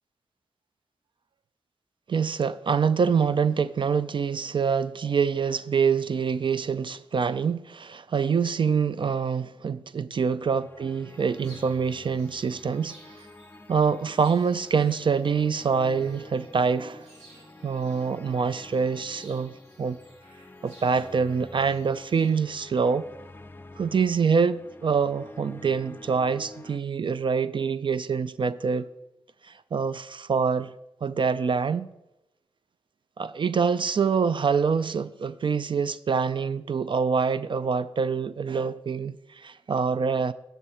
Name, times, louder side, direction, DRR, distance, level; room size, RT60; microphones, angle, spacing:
voice 1, 2.1-12.9 13.7-17.1 17.6-19.5 19.8-20.0 20.6-23.1 23.8-28.9 29.4-30.7 31.0-31.9 33.2-40.3, right 6 dB, 50° right, 0.4 m, -25 dB
sound 1, 10.3-26.8, left 2 dB, 20° left, 0.5 m, -48 dB
sound 2, 11.1-22.3, right 1 dB, 90° right, 2.7 m, -56 dB
11.5 x 6.5 x 4.4 m
cardioid pair, 45°, 10 cm